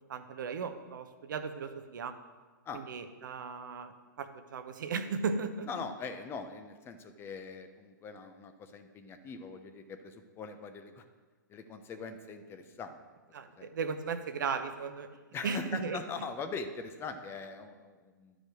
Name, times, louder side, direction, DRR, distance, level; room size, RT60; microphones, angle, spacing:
voice 1, 0.1-2.1 2.7-5.7 13.3-15.1 15.4-16.0, right 5 dB, 70° right, 8 dB, 0.9 m, -36 dB
voice 2, 5.7-11.0 11.5-13.0 13.6-13.7 15.3-18.3, left 4 dB, 20° left, 9 dB, 0.8 m, -42 dB
11.5 x 5.1 x 6.4 m, 1.4 s
hypercardioid pair, 125°, 11 cm